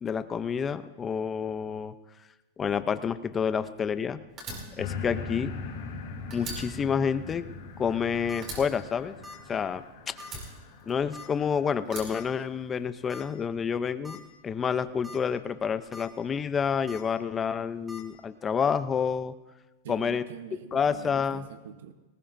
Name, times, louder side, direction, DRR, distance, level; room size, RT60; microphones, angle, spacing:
voice 1, 0.0-1.9 2.6-4.2 4.8-5.5 6.3-7.5 7.8-9.1 9.5-10.1 10.9-19.3 19.9-20.2 20.7-21.5, left 6 dB, 20° left, 12 dB, 0.5 m, -29 dB
Fire, 4.4-6.0 6.3-8.0 8.4-9.7 10.2-11.3 11.8-13.0, right 2 dB, 30° right, 5.1 m, -42 dB
sound 1, 4.8-12.1 12.7-12.8, left 4 dB, 80° left, 4.3 m, -41 dB
sound 2, 8.0-8.4 9.2-9.5 9.7-9.8 10.2-10.3 11.1-11.4 12.1-12.2 13.1-13.2 13.7-13.8 14.0-14.2 14.8-15.2 15.6-16.0 16.9-17.0 17.9-18.0, left 2 dB, 5° right, 2.0 m, -44 dB
voice 2, 19.8-21.9, right 8 dB, 85° right, 8 dB, 0.9 m, -44 dB
19.5 x 19.0 x 2.6 m, 1.1 s
supercardioid pair, 155°, 0 cm